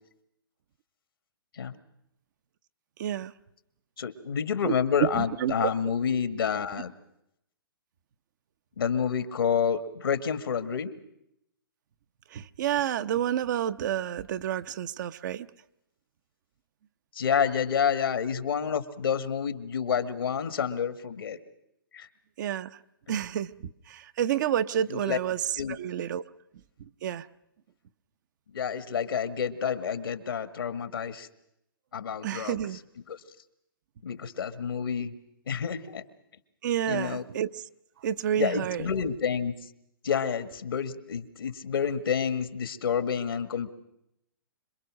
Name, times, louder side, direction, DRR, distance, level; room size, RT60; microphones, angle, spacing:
voice 1, 3.0-3.3 4.7-4.8 5.0-5.7 12.3-15.5 22.4-22.8 23.1-26.2 27.0-27.3 32.2-32.8 36.6-37.6 38.0-38.8, right 10 dB, 55° right, 0.9 m, -29 dB
voice 2, 4.0-6.9 8.8-11.0 17.1-21.4 21.9-22.1 23.1-23.2 24.9-25.2 25.6-25.8 28.5-31.3 31.9-32.6 33.1-33.2 34.0-35.1 35.5-36.0 36.9-37.2 38.4-39.5 40.0-43.7, left 7 dB, 75° left, 1.8 m, -29 dB
26.5 x 22.0 x 6.3 m
hypercardioid pair, 135°, 12 cm